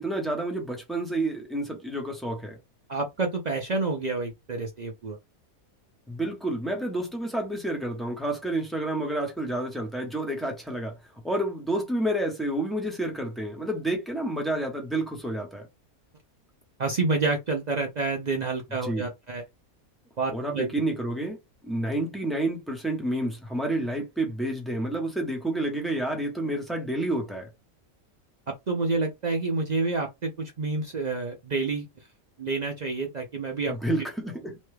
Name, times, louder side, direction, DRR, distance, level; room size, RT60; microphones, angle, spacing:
voice 1, 0.0-2.6 6.1-10.9 11.2-15.7 18.8-19.1 20.3-21.4 21.6-27.5 33.7-34.6, right 1 dB, ahead, 0.7 m, -29 dB
voice 2, 2.9-5.2 16.8-19.4 20.2-20.7 28.7-31.9 32.4-33.8, right 3 dB, 75° right, 0.4 m, -28 dB
3.0 x 2.2 x 3.2 m
omnidirectional pair, 1.5 m